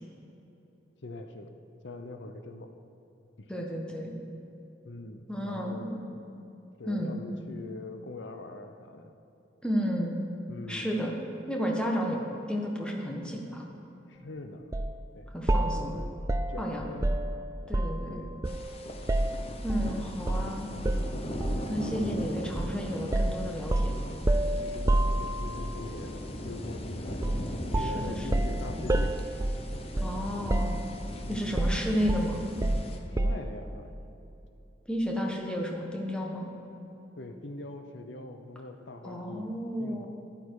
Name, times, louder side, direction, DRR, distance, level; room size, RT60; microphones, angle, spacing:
voice 1, 1.0-1.5 1.8-2.7 3.4-3.5 4.8-6.4 6.8-9.1 10.5-11.0 14.1-14.7 15.1-15.3 15.6-16.1 16.5-17.2 18.1-18.3 22.0-22.4 24.6-27.4 27.7-29.2 31.2-31.7 33.1-34.0 37.2-39.5 39.8-40.1, left 2 dB, 70° left, 6 dB, 0.8 m, -43 dB
voice 2, 3.5-4.1 5.3-6.0 6.9-7.1 9.6-10.2 10.7-11.1 11.5-12.2 12.5-13.7 15.3-16.0 16.6-16.9 17.7-18.2 19.6-20.7 21.7-23.9 27.7-28.4 30.0-30.8 31.3-32.4 34.9-36.5 39.0-40.1, equal, 5° left, -1 dB, 1.3 m, -32 dB
sound 1, 14.7-14.9 15.5-18.1 18.4-19.9 20.3-20.5 20.8-21.7 22.6-22.8 23.1-25.7 27.2-27.5 27.7-30.2 30.5-31.1 31.6-33.5, right 1 dB, 20° right, 0.4 m, -29 dB
sound 2, 18.4-33.0, left 1 dB, 30° left, 0.9 m, -39 dB
14.0 x 10.5 x 4.8 m, 3.0 s
head